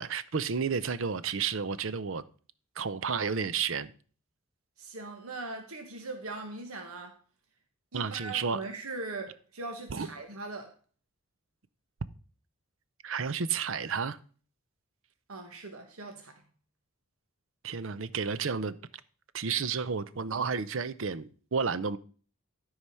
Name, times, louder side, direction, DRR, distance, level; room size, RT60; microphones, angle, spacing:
voice 1, 0.0-2.2 2.8-3.9 7.9-8.6 9.9-10.1 13.0-14.2 17.6-18.7 19.3-22.0, right 6 dB, 60° right, 0.6 m, -31 dB
voice 2, 4.8-7.2 7.9-10.8 15.3-16.4, right 3 dB, 80° right, 1.4 m, -40 dB
13.0 x 4.9 x 5.6 m
head